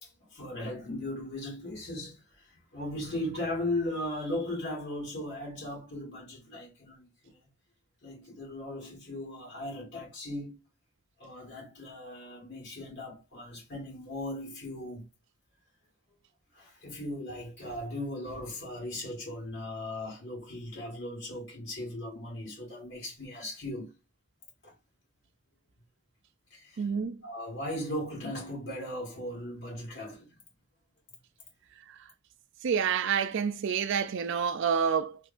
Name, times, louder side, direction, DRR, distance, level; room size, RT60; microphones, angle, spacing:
voice 1, 0.0-7.4 8.0-10.6 11.2-15.1 16.5-23.9 24.6-24.7 26.5-26.9 27.2-30.3, left 1 dB, 55° left, 1.6 m, -38 dB
voice 2, 26.8-27.2 32.6-35.2, right 7 dB, 60° right, 0.4 m, -28 dB
3.6 x 2.8 x 2.5 m
head